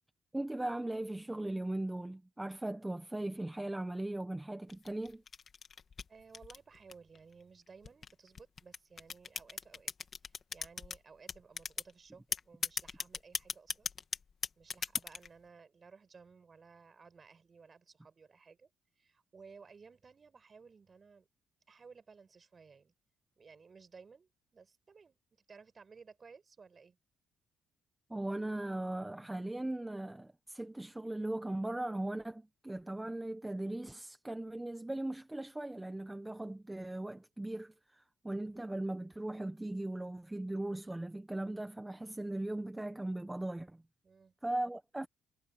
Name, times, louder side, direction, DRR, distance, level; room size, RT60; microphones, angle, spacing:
voice 1, 0.3-5.2 28.1-43.8 44.4-45.1, right 1 dB, 10° right, 1.3 m, -38 dB
sound 1, 4.7-7.2 7.8-11.0 11.3-11.9 12.3-15.3, left 6 dB, 45° left, 2.3 m, -38 dB
voice 2, 6.1-9.9 10.2-13.9 14.6-18.7 19.0-21.3 21.7-22.9 23.4-25.2 25.5-27.0 44.0-44.4, right 5 dB, 40° right, 6.8 m, -57 dB
cardioid pair, 90°, 0 cm